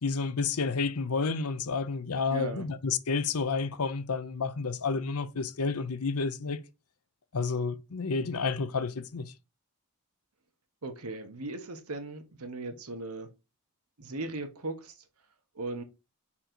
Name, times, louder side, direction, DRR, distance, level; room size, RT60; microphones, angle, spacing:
voice 1, 0.0-6.6 7.3-9.3, left 4 dB, 85° left, 0.7 m, -30 dB
voice 2, 2.3-2.7 10.8-13.3 14.0-14.9 15.5-15.8, right 2 dB, 80° right, 1.2 m, -37 dB
5.1 x 4.3 x 4.5 m
head